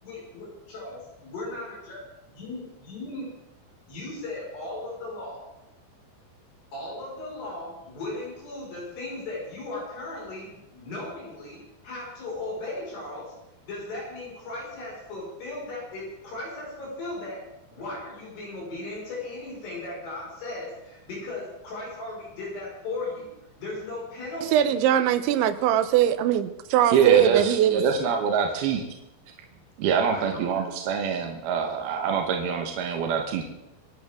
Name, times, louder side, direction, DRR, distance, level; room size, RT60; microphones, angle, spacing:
voice 1, 0.0-2.0 2.3-3.3 3.9-5.4 6.7-11.6 11.8-13.3 13.6-17.4 17.7-23.3 23.6-24.7 30.1-30.6, left 2 dB, 65° left, 7.4 m, -37 dB
voice 2, 24.5-27.8, right 11 dB, 90° right, 3.1 m, -21 dB
voice 3, 26.9-28.8 29.8-33.5, right 6 dB, 70° right, 2.8 m, -25 dB
26.0 x 11.5 x 3.7 m
omnidirectional pair, 5.3 m